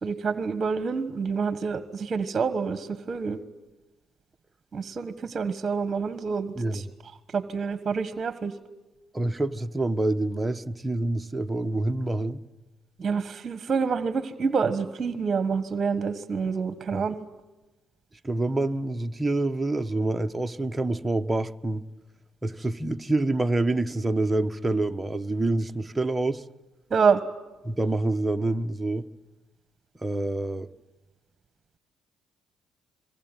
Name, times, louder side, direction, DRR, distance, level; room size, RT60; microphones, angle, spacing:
voice 1, 0.0-3.4 4.7-6.8 7.3-8.5 13.0-17.2 26.9-27.2, right 5 dB, 35° right, 1.4 m, -27 dB
voice 2, 9.1-12.4 16.9-17.1 18.2-21.8 22.4-26.4 27.6-29.1 30.0-30.7, right 2 dB, 15° right, 1.1 m, -27 dB
27.0 x 23.0 x 9.2 m
cardioid pair, 85°, 0 cm